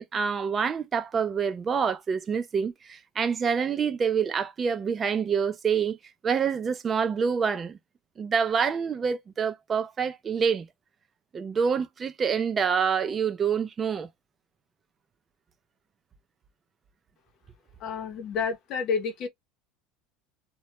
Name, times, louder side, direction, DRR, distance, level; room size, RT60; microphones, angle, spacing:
voice 1, 0.0-6.0 6.2-7.8 8.2-10.6 11.3-14.1, right 6 dB, 20° right, 0.3 m, -27 dB
voice 2, 17.8-19.3, left 5 dB, 40° left, 0.6 m, -29 dB
2.1 x 2.1 x 2.9 m
cardioid pair, 155°, 0 cm